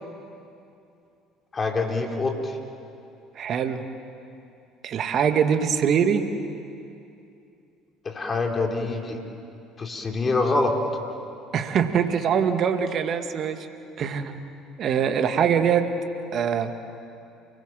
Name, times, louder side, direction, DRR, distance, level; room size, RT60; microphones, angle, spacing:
voice 1, 1.5-2.6 8.0-9.2 9.8-10.7, left 3 dB, 30° left, 2 dB, 3.9 m, -25 dB
voice 2, 3.4-3.9 4.8-6.3 11.5-13.7 14.0-14.4 14.8-15.9 16.3-16.8, right 7 dB, 50° right, 7 dB, 1.9 m, -23 dB
29.5 x 20.5 x 7.6 m, 2.6 s
hypercardioid pair, 60°, 0 cm